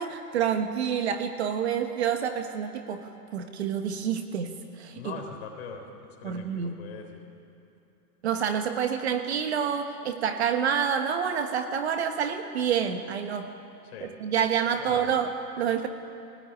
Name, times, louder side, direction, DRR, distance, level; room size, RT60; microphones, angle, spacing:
voice 1, 0.0-5.2 6.2-6.7 8.2-13.5 14.2-15.9, right 8 dB, 40° right, 6 dB, 1.4 m, -28 dB
voice 2, 4.9-5.9 6.2-7.2 13.8-14.2 14.8-15.2, left 6 dB, 35° left, 2 dB, 3.9 m, -41 dB
22.0 x 18.5 x 9.7 m, 2.8 s
hypercardioid pair, 175°, 49 cm